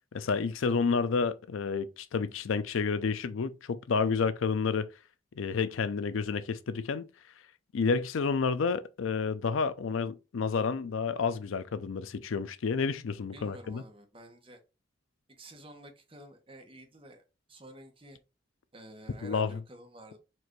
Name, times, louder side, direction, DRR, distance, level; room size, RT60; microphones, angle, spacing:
voice 1, 0.1-4.9 5.4-7.0 7.7-13.8 19.2-19.6, left 5 dB, 80° left, 0.4 m, -30 dB
voice 2, 13.3-14.6 15.3-17.2 17.5-18.2 18.7-20.2, right 1 dB, 25° right, 1.0 m, -50 dB
4.5 x 2.5 x 4.5 m
head